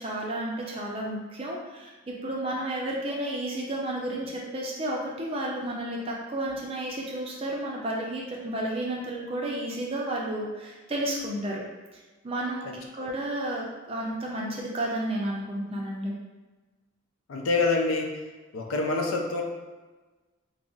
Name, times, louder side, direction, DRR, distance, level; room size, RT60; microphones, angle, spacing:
voice 1, 0.0-11.6 11.9-12.7 12.9-16.1, right 1 dB, 25° right, -2 dB, 0.4 m, -32 dB
voice 2, 17.3-18.2 18.5-19.4, left 3 dB, 85° left, 2 dB, 0.4 m, -26 dB
2.4 x 2.0 x 3.7 m, 1.3 s
head